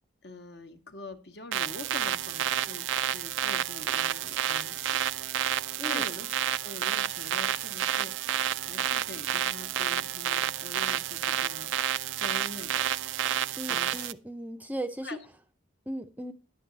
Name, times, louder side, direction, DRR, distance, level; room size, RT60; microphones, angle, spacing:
voice 1, 0.2-5.0 5.8-8.1 8.6-11.7 12.1-12.9 13.6-14.1 15.0-15.2, left 2 dB, 60° left, 5 dB, 1.1 m, -44 dB
sound 1, 1.5-14.1, right 11 dB, 80° right, 0.4 m, -30 dB
voice 2, 13.6-15.2 15.9-16.3, right 1 dB, 10° right, 8 dB, 0.5 m, -37 dB
10.5 x 7.6 x 3.9 m, 0.35 s
head